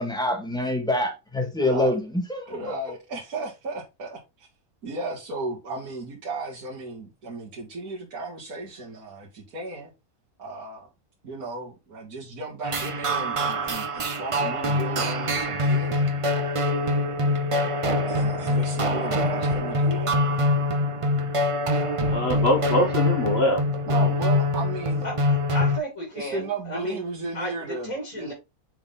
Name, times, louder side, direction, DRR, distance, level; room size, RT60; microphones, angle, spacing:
voice 1, 0.0-2.6, left 1 dB, 5° left, 1.8 m, -26 dB
voice 2, 1.6-2.0 2.5-4.5 4.8-9.9 10.4-10.9 11.2-16.6 18.0-20.5 23.9-25.0 26.1-28.3, right 3 dB, 80° right, 2.2 m, -35 dB
sound 1, 12.6-25.8, left 1 dB, 40° right, 0.5 m, -24 dB
voice 3, 22.1-24.1, left 1 dB, 45° left, 1.2 m, -24 dB
voice 4, 25.0-27.0 27.3-28.3, equal, 65° left, 3.1 m, -34 dB
6.9 x 3.9 x 3.7 m
omnidirectional pair, 1.6 m